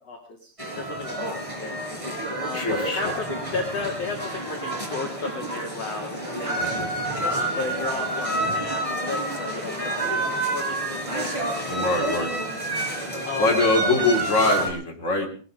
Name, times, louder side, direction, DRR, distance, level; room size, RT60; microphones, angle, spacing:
voice 1, 0.0-1.8 2.4-6.7 7.2-12.1 13.2-13.6, left 4 dB, 45° left, 1 dB, 2.8 m, -34 dB
sound 1, 0.6-14.7, right 2 dB, 10° right, 5.2 m, -29 dB
voice 2, 2.5-3.0 6.6-6.9 11.7-12.3 13.4-15.3, left 2 dB, 20° left, 1 dB, 3.6 m, -23 dB
20.5 x 13.0 x 5.1 m, 0.42 s
omnidirectional pair, 4.4 m